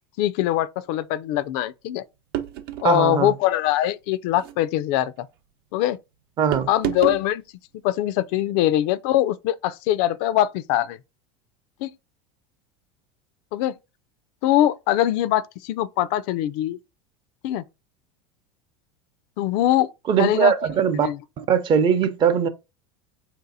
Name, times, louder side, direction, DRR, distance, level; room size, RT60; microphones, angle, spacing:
voice 1, 0.2-2.0 2.8-5.3 5.7-6.0 6.7-7.4 7.8-11.0 11.8-11.9 13.5-13.7 14.4-16.8 17.4-17.6 19.4-19.9 20.2-20.5 21.0-21.2, left 13 dB, 60° left, 0.4 m, -22 dB
sound 1, 2.3-2.9 4.3-4.6 6.5-7.3, right 12 dB, 70° right, 0.8 m, -29 dB
voice 2, 2.8-3.3 6.4-6.7 20.1-21.1 21.4-22.5, right 7 dB, 35° right, 0.7 m, -20 dB
4.5 x 2.8 x 3.9 m
supercardioid pair, 120°, 13 cm